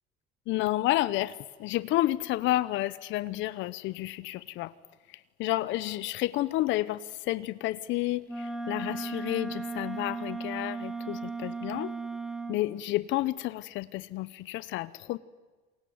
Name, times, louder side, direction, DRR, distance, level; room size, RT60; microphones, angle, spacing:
voice 1, 0.5-1.3 1.6-4.7 5.4-7.0 7.3-8.2 8.7-11.9 12.5-15.2, left 16 dB, 70° left, 17 dB, 0.9 m, -30 dB
Wind instrument woodwind instrument, 8.2-12.6, right 3 dB, ahead, 2.2 m, -36 dB
27.5 x 22.0 x 9.5 m, 1.3 s
cardioid pair, 115°, 21 cm